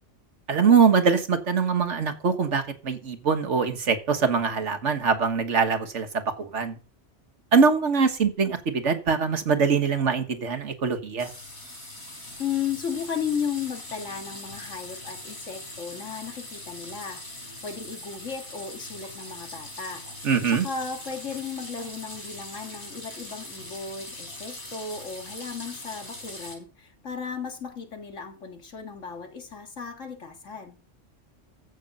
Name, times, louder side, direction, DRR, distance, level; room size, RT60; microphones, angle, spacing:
voice 1, 0.5-6.8 7.5-11.3 20.2-20.7, right 5 dB, 75° right, 1.7 m, -23 dB
sound 1, 11.2-26.5, left 1 dB, 65° left, 5.3 m, -41 dB
voice 2, 12.4-20.0 20.5-30.8, left 6 dB, 80° left, 2.3 m, -35 dB
14.5 x 6.5 x 5.4 m
omnidirectional pair, 1.3 m